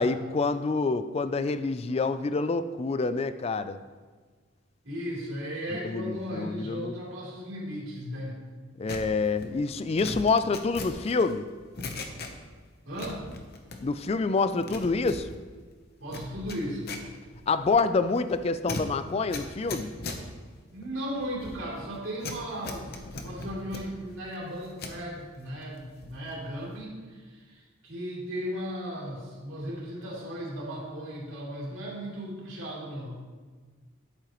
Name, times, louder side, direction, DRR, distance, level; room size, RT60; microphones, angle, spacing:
voice 1, 0.0-3.8 5.8-6.9 8.8-11.4 13.8-15.3 17.5-19.9, left 4 dB, 30° left, 11 dB, 0.3 m, -27 dB
voice 2, 4.8-8.3 12.8-13.2 16.0-16.9 20.7-22.9 23.2-33.2, equal, 70° right, -5 dB, 3.0 m, -36 dB
sound 1, 8.9-12.6 12.9-14.1 14.4-25.0 25.4-26.3 26.5-26.8, left 3 dB, 50° left, 0.9 m, -40 dB
10.5 x 8.6 x 3.0 m, 1.5 s
head